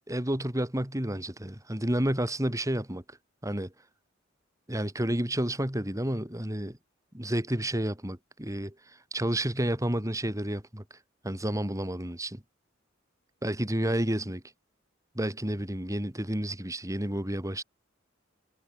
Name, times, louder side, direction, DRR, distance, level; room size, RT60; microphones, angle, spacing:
voice 1, 0.1-3.0 3.4-3.7 4.7-6.8 7.1-8.7 9.1-10.8 11.2-12.4 13.4-14.4 15.1-17.6, right 1 dB, 15° right, 3.0 m, -30 dB
head